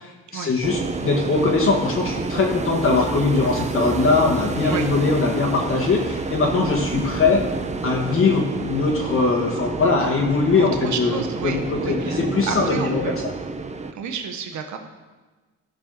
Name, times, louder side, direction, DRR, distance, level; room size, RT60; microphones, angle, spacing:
voice 1, 0.0-7.4 7.8-13.3, left 4 dB, 45° left, -1 dB, 1.6 m, -21 dB
sound 1, 0.6-13.9, right 3 dB, 25° right, 0.8 m, -28 dB
voice 2, 10.6-12.2 12.5-13.1 13.9-14.8, right 6 dB, 70° right, 5 dB, 1.2 m, -31 dB
12.5 x 5.1 x 6.8 m, 1.3 s
cardioid pair, 90°, 30 cm